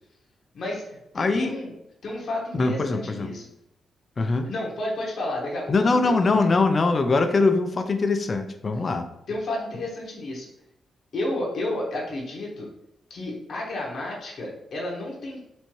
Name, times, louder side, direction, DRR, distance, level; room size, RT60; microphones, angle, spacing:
voice 1, 0.5-1.7 2.0-3.4 4.4-6.5 9.3-10.5 11.1-12.7 13.1-15.5, left 1 dB, 65° left, -3 dB, 1.2 m, -31 dB
voice 2, 1.2-1.6 2.5-3.3 4.2-4.5 5.7-9.1, left 3 dB, 40° left, 7 dB, 0.4 m, -22 dB
4.4 x 2.8 x 3.1 m, 0.82 s
cardioid pair, 95°, 0 cm